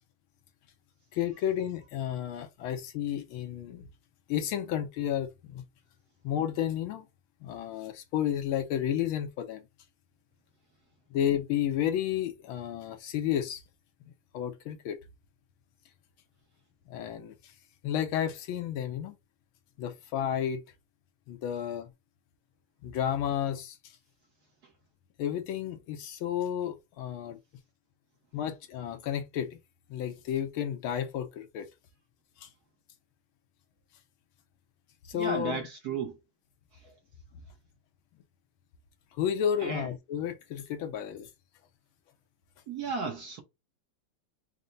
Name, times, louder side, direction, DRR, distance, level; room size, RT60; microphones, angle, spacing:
voice 1, 1.1-3.9 4.3-5.6 6.2-7.1 7.4-9.6 11.1-13.6 14.3-15.0 16.9-17.3 17.8-19.1 19.8-20.6 21.3-21.9 22.8-23.8 25.2-27.4 28.3-29.6 29.9-31.7 32.4-32.5 35.1-35.6 39.2-41.3, left 10 dB, 75° left, 1.5 m, -32 dB
voice 2, 35.1-36.1 36.8-36.9 39.6-39.9 42.7-43.4, right 5 dB, 60° right, 1.1 m, -34 dB
4.4 x 2.1 x 3.7 m
omnidirectional pair, 2.4 m